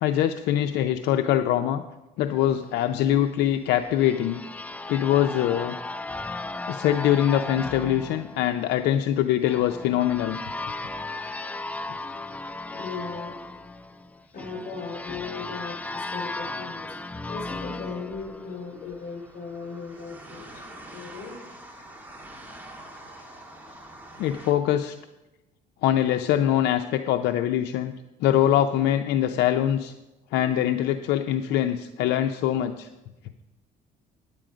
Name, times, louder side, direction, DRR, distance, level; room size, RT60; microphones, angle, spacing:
voice 1, 0.0-1.8 2.2-4.4 4.9-5.8 6.7-10.4 24.2-25.0 25.8-27.9 28.2-29.9 30.3-32.9, left 11 dB, 85° left, 7 dB, 0.5 m, -23 dB
sound 1, 3.4-19.1, left 2 dB, 10° left, 0.4 m, -36 dB
voice 2, 12.7-13.3 14.3-16.9 17.3-20.4 20.9-21.4, left 5 dB, 50° left, 2 dB, 4.6 m, -37 dB
sound 2, 17.6-24.5, right 1 dB, 10° right, 1.8 m, -46 dB
9.8 x 9.0 x 5.0 m, 1.0 s
cardioid pair, 110°, 17 cm